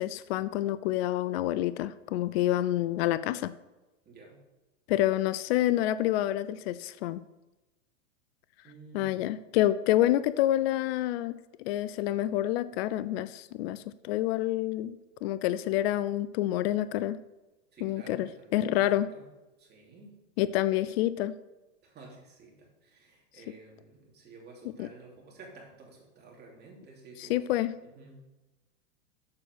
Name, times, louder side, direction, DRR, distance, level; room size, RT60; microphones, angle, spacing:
voice 1, 0.0-3.5 4.9-7.2 8.9-17.2 17.8-19.1 20.4-21.3 24.8-24.9 27.2-27.7, left 14 dB, 50° left, 15 dB, 0.5 m, -28 dB
voice 2, 4.0-4.4 8.6-9.3 17.7-19.3 19.6-20.1 21.8-27.5 27.8-28.2, right 3 dB, 25° right, -2 dB, 3.1 m, -52 dB
7.4 x 6.2 x 6.2 m, 1.1 s
hypercardioid pair, 115°, 39 cm